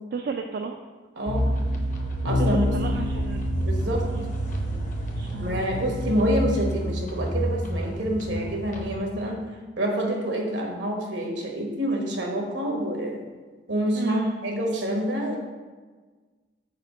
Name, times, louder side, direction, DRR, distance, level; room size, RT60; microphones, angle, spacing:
voice 1, 0.1-0.7 2.4-3.5 4.1-4.3 5.1-5.9 13.9-14.4, right 5 dB, 55° right, 4 dB, 0.3 m, -33 dB
voice 2, 1.2-1.6 2.2-2.7 3.6-4.0 5.4-9.4 9.8-13.2 13.7-15.4, equal, 75° right, 0 dB, 1.1 m, -27 dB
sound 1, 1.3-9.0, equal, 45° left, 0.7 m, -28 dB
4.5 x 4.3 x 5.0 m, 1.4 s
head